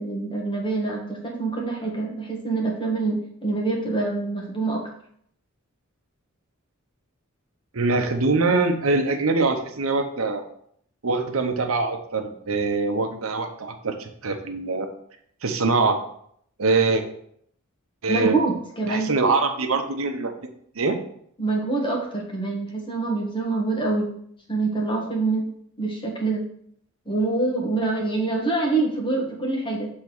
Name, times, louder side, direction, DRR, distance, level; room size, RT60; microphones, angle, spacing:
voice 1, 0.0-4.8 18.1-19.1 21.4-24.1 24.5-25.5 25.8-26.4 27.1-29.9, right 3 dB, 25° left, -1 dB, 1.5 m, -25 dB
voice 2, 7.7-10.4 11.0-14.9 15.4-16.0 16.6-17.0 18.0-18.4 18.9-20.3 20.7-21.0, right 3 dB, 75° right, 6 dB, 0.8 m, -23 dB
7.4 x 3.6 x 4.6 m, 0.67 s
head